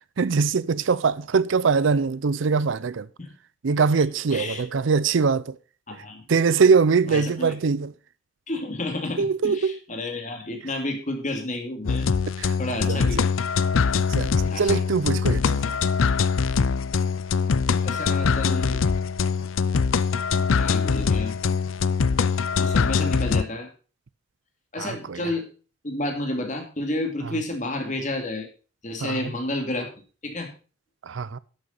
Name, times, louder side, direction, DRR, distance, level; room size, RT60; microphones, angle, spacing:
voice 1, 0.2-3.1 3.6-5.6 6.3-7.9 9.2-9.8 12.4-13.2 14.1-15.6 24.8-25.2 29.0-29.3 31.0-31.4, right 5 dB, 70° right, 0.5 m, -23 dB
voice 2, 4.3-4.6 5.9-6.2 7.1-7.5 8.5-12.1 12.6-13.3 14.5-14.8 17.8-18.8 20.3-21.4 22.6-23.7 24.7-25.5 25.8-28.5 28.8-29.9 30.2-30.5, left 2 dB, 40° left, 2.4 m, -31 dB
sound 1, 11.8-23.4, left 5 dB, 80° left, 0.5 m, -23 dB
11.0 x 6.8 x 5.4 m
head